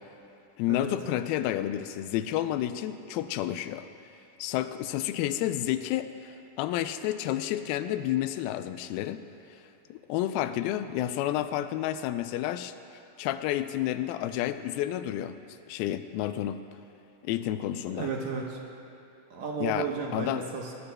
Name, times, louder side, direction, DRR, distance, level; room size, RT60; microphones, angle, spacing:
voice 1, 0.6-3.9 4.4-9.2 9.9-12.7 13.2-15.4 15.7-16.6 17.2-18.1 19.6-20.4, left 12 dB, 90° left, 10 dB, 2.4 m, -30 dB
voice 2, 17.9-18.6 19.3-20.8, right 5 dB, 65° right, -1 dB, 1.9 m, -33 dB
20.0 x 19.5 x 2.2 m, 2.9 s
omnidirectional pair, 4.2 m